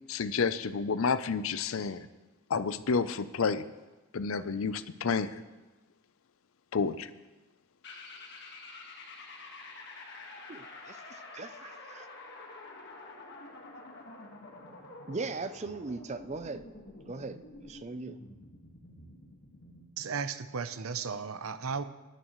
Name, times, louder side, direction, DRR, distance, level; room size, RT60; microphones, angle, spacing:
voice 1, 0.1-2.1 2.5-3.6 4.1-5.3 6.7-7.1, left 5 dB, 75° left, 14 dB, 0.6 m, -30 dB
sound 1, 7.8-19.9, left 2 dB, 55° left, 1.7 m, -48 dB
voice 2, 10.5-12.1 15.1-16.7 17.1-18.2, right 3 dB, 30° right, 12 dB, 0.5 m, -39 dB
voice 3, 20.0-21.8, right 5 dB, 90° right, 12 dB, 0.7 m, -35 dB
18.5 x 11.0 x 3.1 m, 1.1 s
head